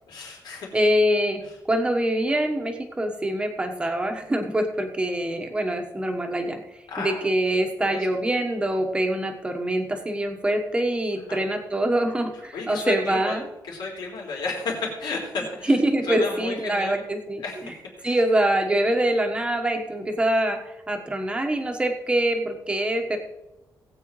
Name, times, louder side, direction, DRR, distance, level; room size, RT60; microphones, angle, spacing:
voice 1, 0.0-0.7 6.9-7.3 7.8-8.2 11.3-11.4 12.5-15.7 16.1-17.0 17.4-18.2, left 4 dB, 85° left, -2 dB, 3.8 m, -33 dB
voice 2, 0.7-6.6 7.0-13.4 15.6-17.7 18.0-23.2, right 1 dB, 15° right, 4 dB, 1.2 m, -24 dB
19.5 x 8.4 x 3.2 m, 0.97 s
wide cardioid pair, 175°, 7 cm